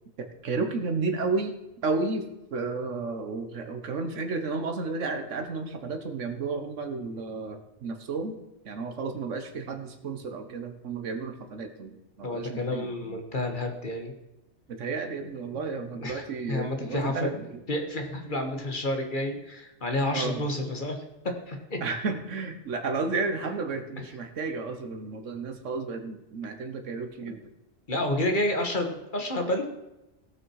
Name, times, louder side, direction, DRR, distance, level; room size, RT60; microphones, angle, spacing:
voice 1, 0.2-1.6 1.8-8.4 8.6-13.2 14.7-17.6 20.1-20.5 21.8-27.4, right 4 dB, 85° right, 7 dB, 1.5 m, -32 dB
voice 2, 12.2-14.1 15.5-15.7 16.0-17.3 17.7-21.0 21.2-21.8 27.2-27.3 27.9-29.6, left 1 dB, 45° left, 4 dB, 1.8 m, -30 dB
17.5 x 6.3 x 4.7 m, 0.93 s
omnidirectional pair, 1.2 m